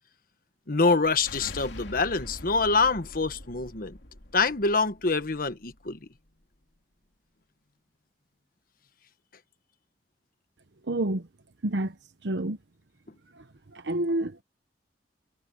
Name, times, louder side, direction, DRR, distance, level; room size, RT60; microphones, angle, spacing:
voice 1, 0.7-4.0 4.3-6.0, left 3 dB, 55° left, 1.3 m, -25 dB
sound 1, 0.8-5.9, left 1 dB, 90° left, 2.6 m, -44 dB
voice 2, 10.9-11.2 11.6-11.9 12.2-12.6 13.7-14.4, right 1 dB, 80° right, 1.0 m, -28 dB
head